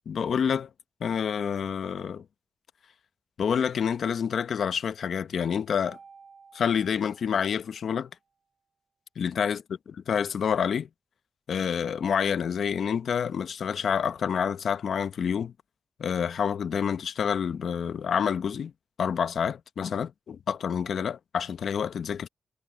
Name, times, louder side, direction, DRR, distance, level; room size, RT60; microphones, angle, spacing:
voice 1, 0.1-0.7 1.0-2.2 3.4-6.0 6.5-8.1 9.2-9.6 10.1-10.9 11.5-15.5 16.0-18.7 19.0-22.3, left 7 dB, 70° left, 0.8 m, -28 dB
Mallet percussion, 5.9-8.1, right 5 dB, 50° right, 5.3 m, -54 dB
cardioid pair, 90°, 0 cm